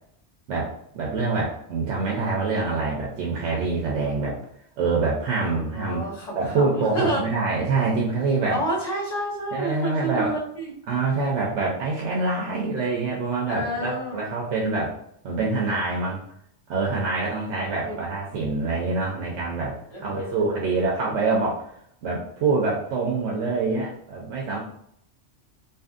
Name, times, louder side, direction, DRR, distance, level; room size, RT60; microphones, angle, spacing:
voice 1, 0.5-4.4 4.8-6.1 6.4-8.6 9.5-10.3 10.9-14.9 15.2-16.2 16.7-21.6 22.0-24.6, right 3 dB, 85° right, -3 dB, 0.9 m, -25 dB
voice 2, 5.7-7.2 8.5-10.6 13.5-14.3 17.8-18.1 19.9-20.5, right 1 dB, 35° left, -6 dB, 1.0 m, -29 dB
2.7 x 2.6 x 2.4 m, 0.70 s
omnidirectional pair, 1.1 m